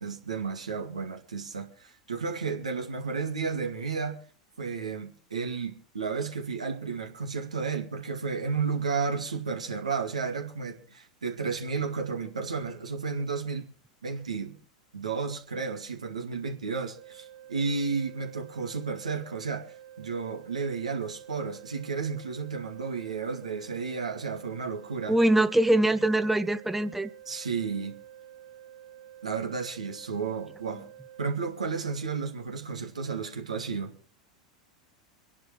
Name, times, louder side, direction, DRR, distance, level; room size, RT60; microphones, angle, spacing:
voice 1, 0.0-4.2 4.6-13.7 14.0-14.6 14.9-25.2 27.3-28.0 29.2-30.9 31.2-33.9, right 5 dB, 80° right, 2.1 m, -32 dB
sound 1, 16.9-31.2, right 11 dB, 65° right, 1.4 m, -50 dB
voice 2, 25.1-27.1, right 1 dB, 5° right, 0.7 m, -23 dB
25.5 x 11.0 x 3.3 m
figure-of-eight pair, 85°, 4 cm